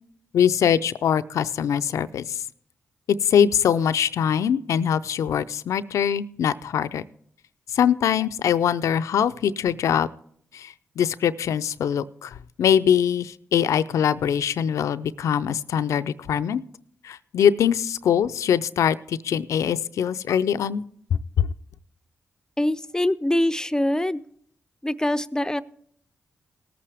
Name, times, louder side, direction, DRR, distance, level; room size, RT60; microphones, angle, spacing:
voice 1, 0.3-2.4 3.2-7.0 7.7-10.1 10.5-16.6 17.0-20.8 21.4-21.5, left 8 dB, 75° left, 14 dB, 0.4 m, -22 dB
voice 2, 22.6-24.2 24.8-25.6, left 1 dB, 10° left, 13 dB, 0.5 m, -24 dB
18.5 x 8.6 x 3.4 m, 0.64 s
supercardioid pair, 45°, 5 cm